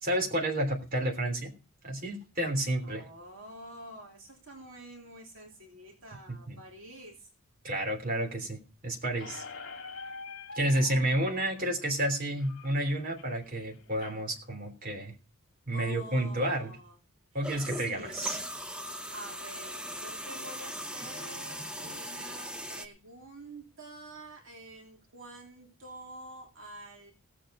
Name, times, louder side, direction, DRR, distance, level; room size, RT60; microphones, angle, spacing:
voice 1, 0.0-1.5 1.8-3.0 6.5-6.6 7.6-9.4 10.5-15.1 15.7-16.7 17.3-18.4, right 1 dB, 40° right, 2 dB, 3.3 m, -30 dB
voice 2, 2.8-7.3 10.6-11.2 15.7-16.9 17.6-18.2 18.8-27.1, right 1 dB, 65° right, 1 dB, 3.0 m, -48 dB
Squeak, 9.2-14.2, left 4 dB, 60° left, 2.3 m, -46 dB
sound 1, 17.4-22.9, equal, 5° right, 0.8 m, -40 dB
17.5 x 7.8 x 5.0 m, 0.33 s
head